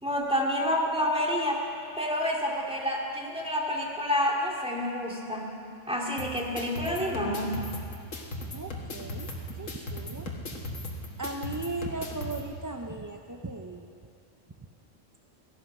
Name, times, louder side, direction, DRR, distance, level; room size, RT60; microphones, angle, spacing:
voice 1, 0.0-1.6 2.0-5.5 5.9-7.6, left 1 dB, 5° right, -2 dB, 2.2 m, -28 dB
sound 1, 6.2-12.4, left 1 dB, 70° left, 1.9 m, -38 dB
voice 2, 8.5-10.3 10.6-10.7 11.2-13.9, right 2 dB, 30° right, 3 dB, 0.3 m, -37 dB
17.0 x 14.5 x 5.4 m, 2.4 s
omnidirectional pair, 1.3 m